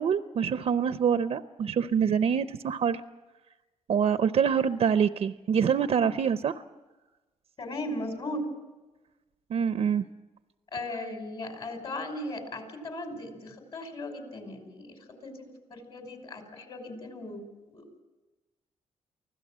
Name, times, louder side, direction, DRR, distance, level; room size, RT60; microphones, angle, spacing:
voice 1, 0.0-3.0 3.9-6.5 9.5-10.0, right 7 dB, 60° right, 11 dB, 0.6 m, -25 dB
voice 2, 7.6-8.5 10.7-18.0, left 1 dB, 50° left, 5 dB, 5.3 m, -38 dB
24.5 x 16.0 x 7.5 m, 1.2 s
cardioid pair, 80°, 12 cm